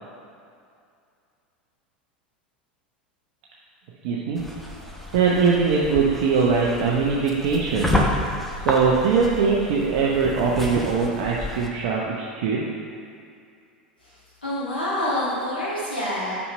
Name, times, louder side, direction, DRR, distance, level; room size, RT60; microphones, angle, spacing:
voice 1, 4.0-4.4 5.1-8.0 8.6-12.7, right 5 dB, 55° right, -3 dB, 0.7 m, -21 dB
sound 1, 4.4-11.7, left 1 dB, 5° left, 0.9 m, -30 dB
voice 2, 14.0-16.4, left 1 dB, 80° left, -10 dB, 1.7 m, -27 dB
5.6 x 5.5 x 5.4 m, 2.4 s
figure-of-eight pair, 80°, 5 cm